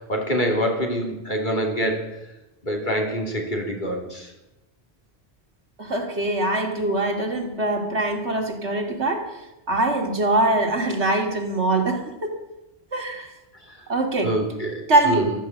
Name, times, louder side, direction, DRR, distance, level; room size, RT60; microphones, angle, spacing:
voice 1, 0.0-2.1 2.6-4.3 14.2-15.3, equal, 45° left, 1 dB, 3.3 m, -25 dB
voice 2, 5.8-9.2 9.7-12.3 12.9-13.3 13.9-14.3 14.9-15.3, right 2 dB, 90° right, 3 dB, 2.7 m, -23 dB
15.0 x 13.0 x 7.4 m, 0.95 s
omnidirectional pair, 1.1 m